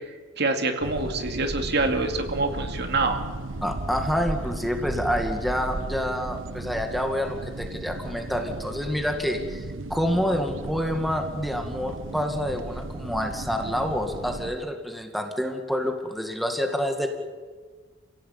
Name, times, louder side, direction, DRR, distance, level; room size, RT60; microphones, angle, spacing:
voice 1, 0.4-3.2, right 3 dB, 55° right, 5 dB, 2.5 m, -25 dB
sound 1, 0.8-14.5, right 2 dB, 80° right, 1.1 m, -35 dB
voice 2, 3.6-17.1, equal, ahead, 4 dB, 2.1 m, -28 dB
29.0 x 17.0 x 8.6 m, 1.5 s
head